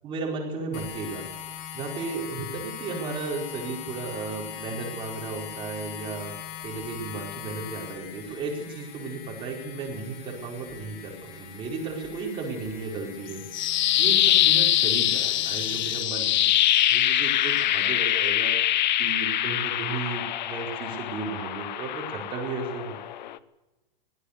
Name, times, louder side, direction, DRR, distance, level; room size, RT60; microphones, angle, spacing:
voice 1, 0.0-1.3 1.7-6.3 6.6-13.4 14.0-16.4 16.9-18.5 19.0-23.0, right 4 dB, 15° right, -1 dB, 4.9 m, -34 dB
sound 1, 0.7-16.0, left 9 dB, 30° left, 2.3 m, -41 dB
sound 2, 13.3-23.4, left 12 dB, 50° left, 0.9 m, -24 dB
22.0 x 17.0 x 6.8 m, 1.1 s
hypercardioid pair, 165°, 29 cm